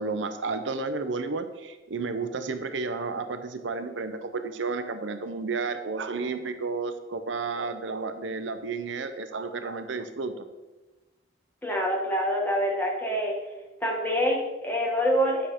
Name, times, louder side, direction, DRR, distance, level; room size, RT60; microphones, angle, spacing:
voice 1, 0.0-10.4, right 4 dB, 75° right, 9 dB, 0.7 m, -32 dB
voice 2, 11.6-13.4 13.8-15.5, equal, 10° left, -2 dB, 1.7 m, -26 dB
9.0 x 5.7 x 5.0 m, 1.1 s
head